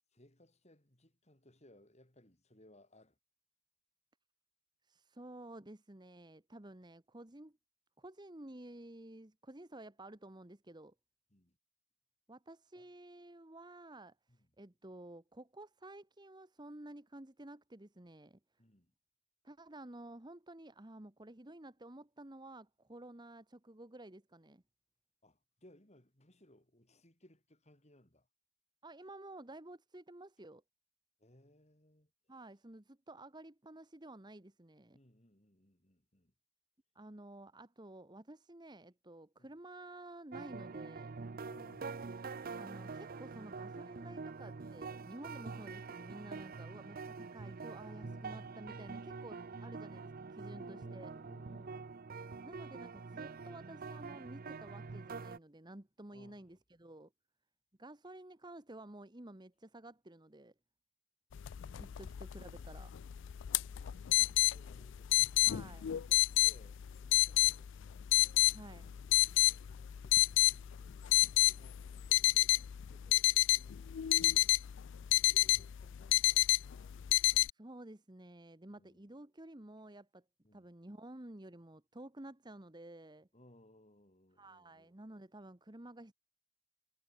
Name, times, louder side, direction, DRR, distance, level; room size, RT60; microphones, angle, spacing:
voice 1, 0.1-3.2 11.3-11.6 12.7-12.9 14.3-14.5 18.6-18.9 25.2-28.3 31.2-32.4 34.9-36.3 39.4-39.5 41.4-42.1 47.9-48.9 50.5-52.0 56.1-56.5 62.6-62.7 64.1-65.1 65.3-68.1 68.7-72.6 72.9-74.6 75.1-77.0 78.7-79.1 80.4-80.7 83.3-85.0, left 1 dB, 30° left, 3.3 m, -64 dB
voice 2, 4.8-7.6 8.0-10.9 12.3-14.2 14.6-18.4 19.4-24.6 28.8-30.6 32.3-35.0 36.9-41.1 42.6-51.1 52.4-57.1 57.8-60.5 61.8-62.9 65.4-65.8 68.5-68.9 77.5-80.2 80.5-83.3 84.4-86.1, right 1 dB, 20° right, 1.1 m, -52 dB
sound 1, 40.3-55.4, right 4 dB, 40° right, 0.5 m, -45 dB
sound 2, 61.4-77.5, left 16 dB, 55° left, 0.3 m, -30 dB
head